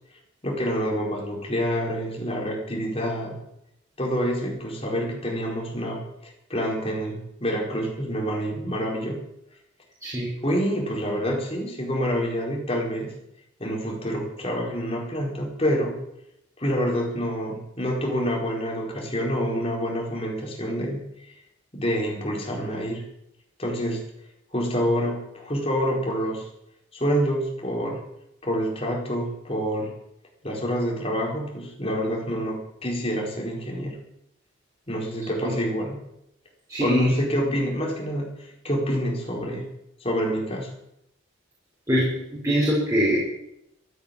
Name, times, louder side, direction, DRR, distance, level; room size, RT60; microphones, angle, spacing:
voice 1, 0.4-3.4 4.0-9.2 10.4-13.1 13.6-15.9 16.6-21.3 21.7-23.1 23.6-24.0 24.5-26.5 26.9-28.0 28.4-29.9 30.4-34.0 34.9-36.0 36.8-39.7 40.0-40.7, equal, 30° left, -1 dB, 4.5 m, -27 dB
voice 2, 36.7-37.6 41.9-43.2, equal, 15° right, -7 dB, 4.9 m, -24 dB
14.0 x 9.3 x 9.0 m, 0.80 s
head